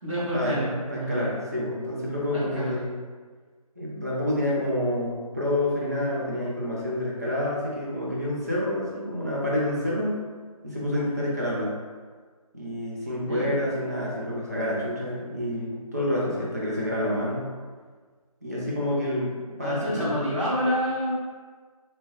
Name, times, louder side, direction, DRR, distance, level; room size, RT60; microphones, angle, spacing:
voice 1, 0.0-1.3 2.3-2.7 13.2-13.5 19.6-21.1, equal, 55° right, -9 dB, 1.2 m, -28 dB
voice 2, 0.9-3.0 3.8-10.2 10.6-11.7 12.5-17.5 18.4-20.1, left 1 dB, 25° right, -6 dB, 0.4 m, -28 dB
2.7 x 2.2 x 3.0 m, 1.5 s
figure-of-eight pair, 165°, 19 cm